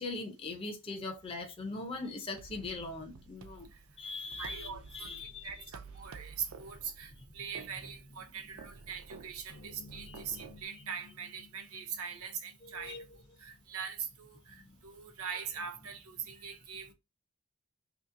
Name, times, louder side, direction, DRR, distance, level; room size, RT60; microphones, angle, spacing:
voice 1, 0.0-3.7 4.0-5.5 10.1-10.4 12.6-13.0, left 3 dB, 25° left, 0.5 m, -41 dB
sound 1, 2.4-10.6, right 4 dB, 60° right, 0.4 m, -52 dB
voice 2, 4.4-13.0 13.4-16.9, right 7 dB, 75° right, 0.8 m, -42 dB
sound 2, 9.5-14.1, left 4 dB, 60° left, 0.8 m, -56 dB
2.8 x 2.8 x 3.6 m
head